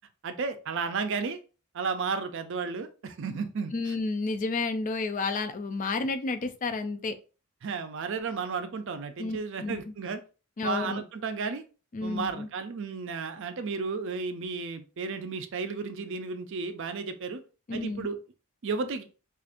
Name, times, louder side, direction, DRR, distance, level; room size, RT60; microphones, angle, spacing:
voice 1, 0.2-1.4 1.7-3.9 7.6-10.2 10.6-11.6 12.0-17.4 17.7-18.2 18.6-19.0, right 4 dB, 55° right, 9 dB, 0.4 m, -33 dB
voice 2, 3.7-7.1 9.2-9.8 10.6-11.0 11.9-12.5 17.7-18.1, left 3 dB, 35° left, 9 dB, 0.4 m, -31 dB
4.9 x 2.5 x 2.5 m, 0.34 s
head